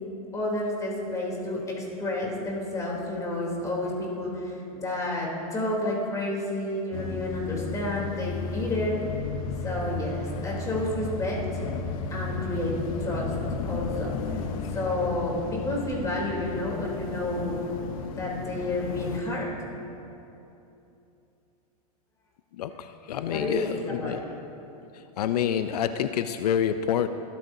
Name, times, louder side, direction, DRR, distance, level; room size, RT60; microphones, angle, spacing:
voice 1, 0.3-9.0 9.6-11.4 12.1-12.8 13.0-13.3 13.6-14.4 14.7-17.6 18.0-19.5 23.3-24.3, left 1 dB, 15° left, -3 dB, 3.3 m, -30 dB
sound 1, 6.9-19.2, left 4 dB, 60° left, 1.0 m, -34 dB
voice 2, 22.6-24.2 25.2-27.1, left 9 dB, 85° left, 10 dB, 0.6 m, -27 dB
21.5 x 13.0 x 2.7 m, 2.9 s
supercardioid pair, 135°, 20 cm